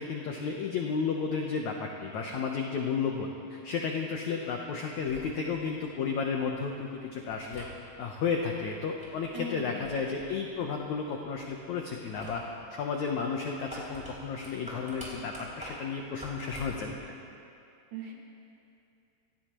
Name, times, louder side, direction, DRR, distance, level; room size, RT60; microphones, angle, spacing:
voice 1, 0.0-7.7 8.0-12.4 12.7-17.0, left 5 dB, 80° left, 1 dB, 1.6 m, -33 dB
sound 1, 4.9-17.0, left 1 dB, ahead, 3.8 m, -49 dB
voice 2, 9.3-9.8 17.9-18.1, right 1 dB, 55° right, -3 dB, 2.9 m, -38 dB
26.0 x 17.0 x 3.1 m, 2.6 s
omnidirectional pair, 4.7 m